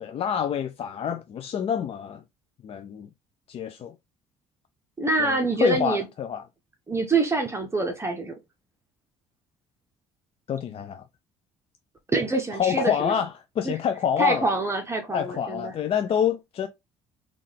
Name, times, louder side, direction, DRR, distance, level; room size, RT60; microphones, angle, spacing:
voice 1, 0.0-2.2 2.6-3.1 3.5-4.0 5.2-6.4 10.5-11.0 12.5-14.4 15.1-16.7, left 8 dB, 40° left, 0.4 m, -27 dB
voice 2, 5.0-6.1 6.9-8.3 12.1-13.1 13.6-13.8 14.2-15.7, right 3 dB, 20° right, 0.8 m, -25 dB
3.6 x 2.3 x 3.2 m
hypercardioid pair, 60°, 15 cm